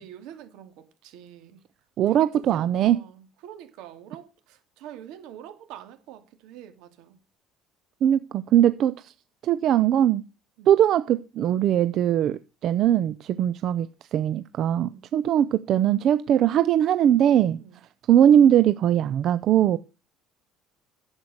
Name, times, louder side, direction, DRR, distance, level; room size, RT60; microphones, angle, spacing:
voice 1, 0.0-1.6 2.1-7.2 10.6-10.7 13.3-13.5 14.8-15.1 17.6-17.8, right 10 dB, 75° right, 2.6 m, -45 dB
voice 2, 2.0-3.0 8.0-9.1 9.4-10.2 10.7-17.6 18.1-19.8, right 10 dB, 45° right, 0.5 m, -20 dB
11.0 x 7.9 x 6.5 m
cardioid pair, 160°, 0 cm